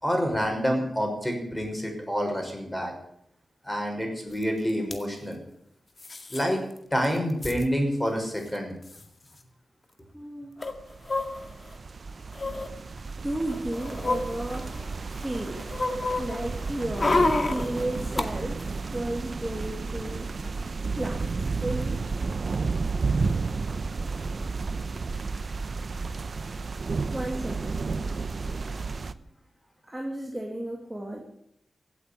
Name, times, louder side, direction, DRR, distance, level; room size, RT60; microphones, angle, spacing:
voice 1, 0.0-2.9 3.6-5.4 6.3-6.6 6.9-8.7, equal, 10° left, 3 dB, 6.0 m, -27 dB
sound 1, 4.4-4.5 4.7-5.0 6.0-6.4 6.8-6.9 7.0-7.6 8.5-8.6 8.8-9.0 10.6-11.7 12.3-12.7 13.3-15.0 15.3-18.3 18.6-18.7, left 2 dB, 40° left, 2.0 m, -29 dB
voice 2, 10.1-10.7 12.4-12.6 13.2-14.7 15.1-15.7 16.2-18.7 18.9-20.3 20.9-21.2 21.6-22.0 27.1-28.2 29.9-31.2, right 1 dB, 15° right, 0 dB, 2.6 m, -34 dB
sound 2, 10.7-29.1, right 4 dB, 55° right, 0.8 m, -32 dB
16.5 x 8.5 x 10.0 m, 0.73 s
cardioid pair, 70°, 0 cm